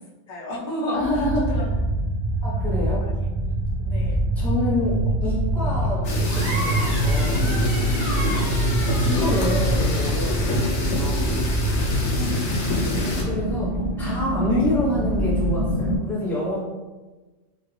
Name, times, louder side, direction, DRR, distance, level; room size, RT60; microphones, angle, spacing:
voice 1, 0.3-1.0 1.5-1.7 2.7-3.1 3.9-4.2 4.7-5.1 7.7-8.6 11.9-12.4 13.7-13.9 14.5-14.6, left 1 dB, 40° left, -6 dB, 0.8 m, -34 dB
voice 2, 0.9-1.6 2.4-3.1 4.3-7.7 8.9-11.4 13.2-16.6, left 1 dB, ahead, -8 dB, 0.8 m, -27 dB
sound 1, 1.0-16.0, right 1 dB, 45° right, 0.7 m, -24 dB
sound 2, 6.0-13.2, left 2 dB, 70° left, 1.1 m, -28 dB
sound 3, 6.3-10.6, right 1 dB, 70° right, 1.3 m, -34 dB
3.1 x 2.4 x 3.2 m, 1.2 s
omnidirectional pair, 1.2 m